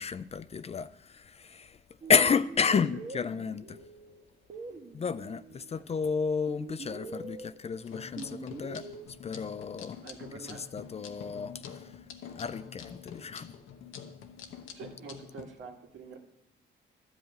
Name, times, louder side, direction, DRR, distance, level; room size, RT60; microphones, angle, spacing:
voice 1, 0.0-1.8 2.1-3.8 4.9-10.0 10.4-13.6, left 6 dB, 30° left, 0.4 m, -31 dB
sound 1, 2.0-5.7 6.5-9.1, right 3 dB, 40° right, 1.3 m, -45 dB
voice 2, 2.7-3.0 5.7-5.8 10.0-10.6 14.7-16.2, right 5 dB, 80° right, 2.1 m, -45 dB
sound 2, 7.8-15.4, left 7 dB, 90° left, 1.1 m, -46 dB
12.5 x 5.6 x 8.7 m
cardioid pair, 90°, 20 cm